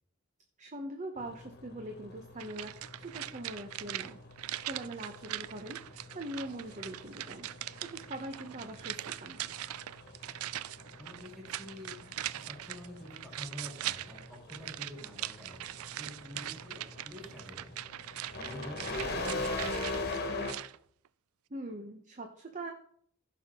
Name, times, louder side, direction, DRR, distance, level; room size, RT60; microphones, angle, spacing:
voice 1, 0.6-2.7 3.0-4.2 4.6-7.5 7.9-9.4 21.5-22.7, right 1 dB, 35° right, 4 dB, 0.9 m, -42 dB
sound 1, 1.2-20.5, left 2 dB, 50° left, 1.4 m, -43 dB
sound 2, 2.4-20.8 21.1-21.2, right 14 dB, 90° right, 0.4 m, -41 dB
voice 2, 11.0-17.8 18.1-20.2, left 1 dB, ahead, -5 dB, 3.6 m, -48 dB
15.0 x 5.7 x 3.7 m, 0.62 s
head